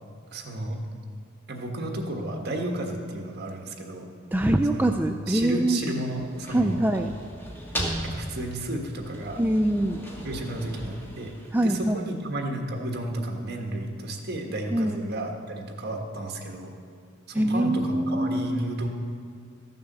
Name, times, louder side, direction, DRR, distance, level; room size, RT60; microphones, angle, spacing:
voice 1, 0.3-0.8 1.5-4.1 4.7-5.0 5.3-6.8 8.0-9.4 10.2-16.7 17.3-18.9, right 1 dB, 55° right, 2 dB, 1.5 m, -32 dB
voice 2, 4.3-5.8 6.5-7.1 9.4-10.0 11.5-12.0 14.7-15.0 17.3-18.7, right 1 dB, 10° right, 5 dB, 0.3 m, -24 dB
sound 1, 6.2-12.1, equal, 10° left, 1.8 m, -37 dB
14.0 x 6.9 x 6.8 m, 2.2 s
head